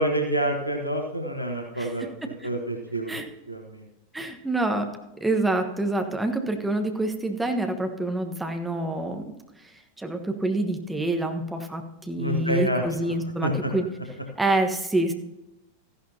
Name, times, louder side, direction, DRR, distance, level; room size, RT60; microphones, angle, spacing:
voice 1, 0.0-3.2 3.5-3.8 12.2-13.1 13.4-13.7, right 1 dB, 90° left, 3 dB, 1.5 m, -28 dB
voice 2, 1.7-2.1 2.4-2.5 3.1-3.3 4.1-4.9 5.2-9.3 10.0-11.8 12.1-13.9 14.4-15.1, right 2 dB, 5° right, 5 dB, 1.3 m, -27 dB
14.5 x 11.5 x 2.8 m, 0.97 s
figure-of-eight pair, 90°, 0 cm